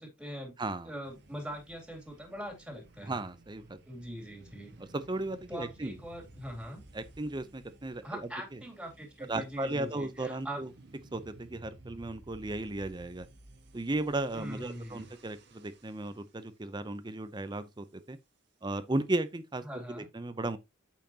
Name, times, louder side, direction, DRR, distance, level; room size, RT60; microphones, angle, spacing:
voice 1, 0.0-0.6 0.8-3.2 3.9-4.7 5.5-6.8 8.0-10.6 14.3-15.1 19.6-20.1, equal, 5° right, 2.7 m, -42 dB
voice 2, 0.6-0.9 3.0-3.8 4.8-6.0 6.9-8.2 8.5-8.6 9.3-10.7 11.1-13.3 13.7-18.2 18.6-20.6, right 2 dB, 20° right, 0.6 m, -35 dB
sound 1, 1.0-16.3, right 2 dB, 60° right, 1.5 m, -56 dB
8.7 x 5.7 x 2.8 m
head